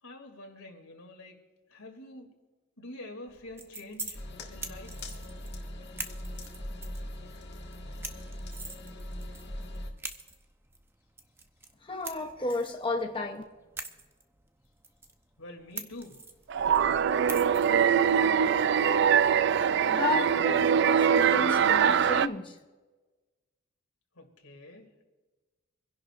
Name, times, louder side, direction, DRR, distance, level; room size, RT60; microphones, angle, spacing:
voice 1, 0.0-1.4 1.7-2.3 2.8-4.2 4.5-5.1 15.4-16.2 24.1-25.0, left 1 dB, 90° left, 2.7 m, -46 dB
sound 1, 3.3-20.2, right 3 dB, 10° right, 0.7 m, -46 dB
sound 2, 4.1-9.9, left 1 dB, 50° left, 1.8 m, -40 dB
voice 2, 11.8-13.4 19.8-22.6, left 2 dB, 25° left, 0.8 m, -32 dB
sound 3, 16.5-22.3, right 7 dB, 50° right, 0.3 m, -23 dB
26.5 x 11.0 x 2.5 m
head